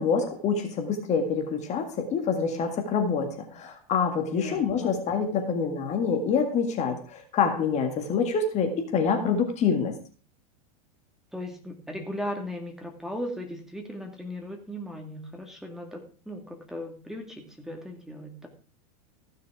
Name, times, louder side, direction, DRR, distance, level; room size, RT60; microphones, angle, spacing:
voice 1, 0.0-10.0, left 5 dB, 35° left, 5 dB, 1.9 m, -26 dB
voice 2, 4.3-4.9 11.3-18.5, equal, ahead, 2 dB, 2.3 m, -37 dB
15.0 x 6.6 x 4.8 m, 0.40 s
hypercardioid pair, 120°, 21 cm